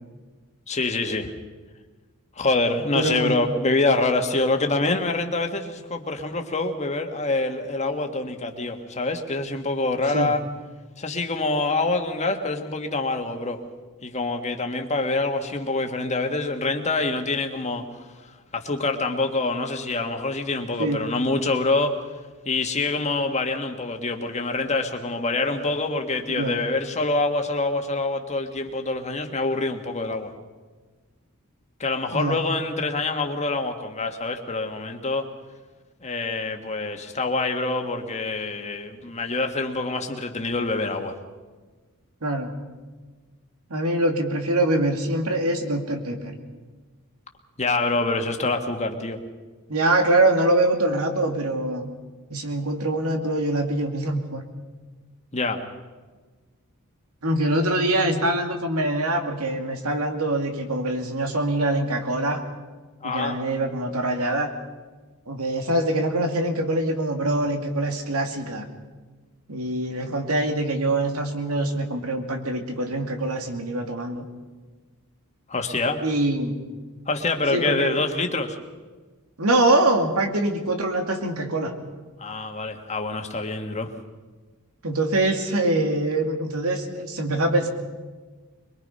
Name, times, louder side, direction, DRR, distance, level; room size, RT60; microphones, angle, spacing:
voice 1, 0.7-1.3 2.3-10.4 11.0-13.6 14.0-22.0 22.4-30.3 31.8-35.2 36.0-41.1 47.6-49.2 55.3-55.6 63.0-63.4 75.5-76.0 77.1-78.6 82.2-83.9, left 3 dB, 30° left, 4 dB, 1.8 m, -26 dB
voice 2, 2.9-3.3 10.1-10.4 20.8-21.1 26.4-26.6 32.1-32.4 42.2-42.5 43.7-46.3 49.7-51.9 52.3-54.4 57.2-62.4 63.0-64.5 65.3-68.7 69.5-74.2 76.0-76.6 77.5-78.0 79.4-81.7 84.8-87.7, right 1 dB, 80° right, 5 dB, 2.5 m, -24 dB
23.5 x 22.5 x 5.5 m, 1.3 s
head